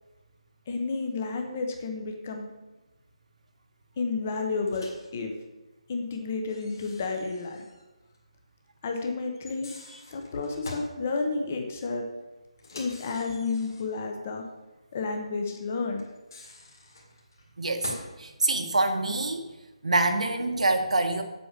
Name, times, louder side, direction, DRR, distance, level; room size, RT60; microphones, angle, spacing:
voice 1, 0.7-2.5 4.0-5.3 5.9-7.6 8.8-9.7 10.1-12.0 12.7-14.4 14.9-16.0, left 4 dB, 15° left, 3 dB, 0.9 m, -31 dB
Microwave oven, 4.7-5.1 6.5-7.9 8.1-8.2 9.4-11.0 12.6-14.0 16.0-18.2, left 2 dB, 35° left, 2.0 m, -45 dB
voice 2, 17.6-17.9 18.2-19.5 19.8-21.2, right 2 dB, 75° right, 5 dB, 1.7 m, -25 dB
7.8 x 7.8 x 6.6 m, 1.1 s
hypercardioid pair, 180°, 4 cm